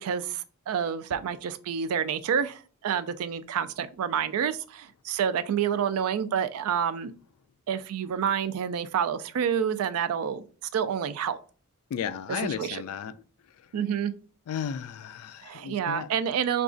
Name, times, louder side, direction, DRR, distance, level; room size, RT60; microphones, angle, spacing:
voice 1, 0.0-7.1 7.7-10.4 10.7-11.4 12.3-12.8 13.7-14.1 15.4-16.6, right 8 dB, 80° right, 0.3 m, -28 dB
voice 2, 11.9-13.1 14.5-16.1, left 7 dB, 80° left, 0.3 m, -34 dB
4.9 x 2.3 x 2.5 m
head